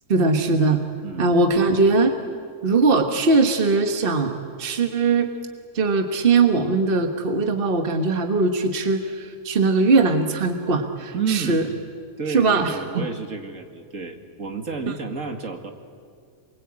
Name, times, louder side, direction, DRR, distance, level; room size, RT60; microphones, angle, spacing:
voice 1, 0.1-0.8 1.2-2.2 2.6-5.3 5.7-11.6 12.3-13.0, right 3 dB, 40° right, 5 dB, 1.6 m, -20 dB
voice 2, 1.0-1.4 11.1-11.6 12.2-15.7, right 5 dB, 65° right, 5 dB, 2.5 m, -30 dB
27.5 x 23.0 x 8.7 m, 2.2 s
omnidirectional pair, 1.5 m